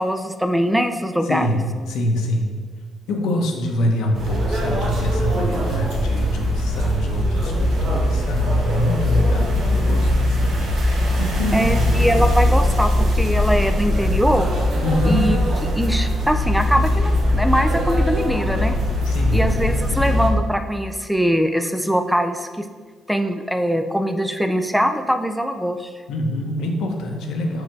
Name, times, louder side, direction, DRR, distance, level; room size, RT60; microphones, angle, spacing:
voice 1, 0.0-1.5 11.5-14.5 15.1-15.4 15.7-18.8 19.3-22.7 23.1-25.9, equal, ahead, 7 dB, 0.4 m, -22 dB
voice 2, 1.2-1.6 1.9-2.5 3.1-10.6 10.9-11.9 14.8-15.3 19.0-19.5 26.1-27.6, equal, 85° left, 2 dB, 0.8 m, -25 dB
sound 1, 4.1-20.3, left 1 dB, 70° right, 1.3 m, -20 dB
4.9 x 4.8 x 4.6 m, 1.5 s
cardioid pair, 90°, 0 cm